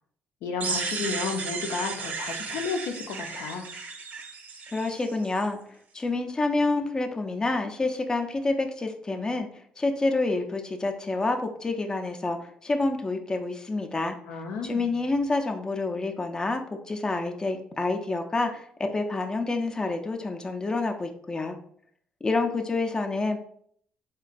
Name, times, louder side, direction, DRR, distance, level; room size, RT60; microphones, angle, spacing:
voice 1, 0.4-3.7 14.3-14.9, left 4 dB, 85° left, 4 dB, 0.5 m, -32 dB
sound 1, 0.6-5.4, right 4 dB, 55° right, 0.5 m, -34 dB
voice 2, 4.7-5.6 5.9-9.5 9.8-14.2 14.6-21.6 22.2-23.4, left 3 dB, 20° left, 5 dB, 0.4 m, -28 dB
3.8 x 2.2 x 2.5 m, 0.63 s
cardioid pair, 85°, 3 cm